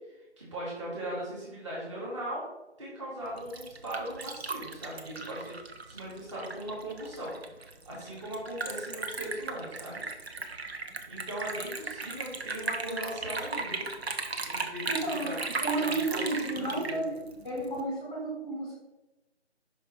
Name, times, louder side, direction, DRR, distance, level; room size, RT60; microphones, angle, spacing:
voice 1, 0.1-2.5 2.8-5.6 5.9-7.3 7.9-10.0 11.1-13.9 14.4-17.0, right 1 dB, 25° right, -6 dB, 2.2 m, -39 dB
Liquid, 3.2-17.8, right 3 dB, 65° right, 0.9 m, -37 dB
voice 2, 14.9-15.3 15.6-17.1 17.4-18.8, right 2 dB, 5° left, -6 dB, 1.3 m, -32 dB
5.6 x 5.1 x 4.3 m, 0.99 s
figure-of-eight pair, 160°, 35 cm